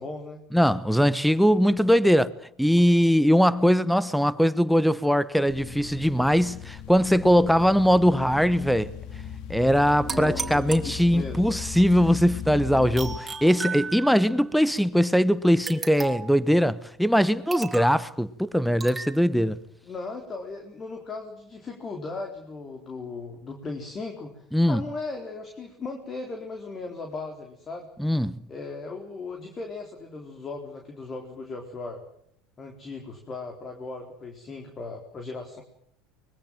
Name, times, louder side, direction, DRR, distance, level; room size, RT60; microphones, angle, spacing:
voice 1, 0.0-0.4 10.1-11.4 19.4-19.6 19.8-27.9 28.5-32.0 32.6-35.6, left 3 dB, 35° left, 4.1 m, -37 dB
voice 2, 0.5-2.3 2.6-8.9 9.5-19.6 24.5-24.8 28.0-28.4, equal, ahead, 1.1 m, -21 dB
sound 1, 5.5-13.2, left 7 dB, 60° left, 2.2 m, -38 dB
sound 2, 10.1-11.5 13.0-14.4 15.7-16.4 17.5-18.0 18.8-19.2, right 4 dB, 20° right, 3.7 m, -35 dB
24.5 x 22.0 x 7.7 m
hypercardioid pair, 80°, 0 cm